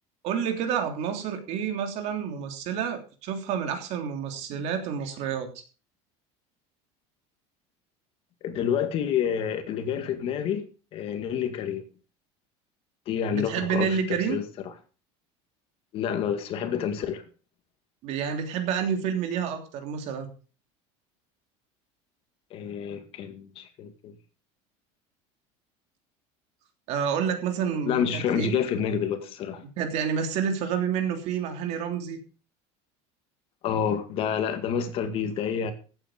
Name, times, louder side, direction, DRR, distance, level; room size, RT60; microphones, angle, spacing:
voice 1, 0.2-5.5 13.3-14.4 18.0-20.3 26.9-28.6 29.8-32.2, right 7 dB, 50° right, 3.1 m, -29 dB
voice 2, 8.4-10.7 10.9-11.8 13.1-14.4 15.9-17.2 22.5-24.1 27.9-29.6 33.6-35.7, left 8 dB, 40° left, 2.0 m, -28 dB
15.0 x 8.9 x 5.1 m
cardioid pair, 165°, 15 cm